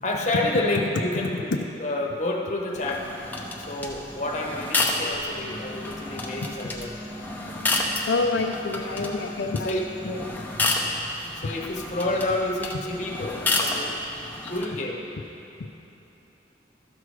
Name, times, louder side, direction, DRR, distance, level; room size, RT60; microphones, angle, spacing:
voice 1, 0.0-3.1 3.7-6.9 9.6-9.9 11.3-15.0, left 2 dB, 40° left, -1 dB, 1.0 m, -29 dB
sound 1, 2.7-14.7, left 2 dB, 10° left, 0.6 m, -30 dB
Wind instrument woodwind instrument, 5.3-10.4, left 1 dB, 10° right, 1.1 m, -42 dB
voice 2, 7.8-10.2 15.6-15.7, left 3 dB, 80° left, 3 dB, 0.5 m, -28 dB
13.0 x 6.1 x 4.8 m, 3.0 s
head